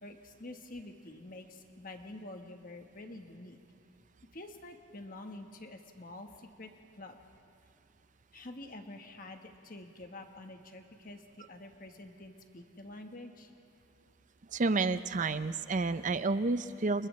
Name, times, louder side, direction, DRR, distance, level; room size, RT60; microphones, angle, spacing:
voice 1, 0.0-3.6 4.3-6.7 7.0-7.2 8.3-13.5, left 2 dB, 45° left, 4 dB, 1.3 m, -47 dB
voice 2, 14.5-17.1, right 3 dB, 40° right, 12 dB, 0.5 m, -30 dB
29.5 x 29.5 x 3.3 m, 2.5 s
head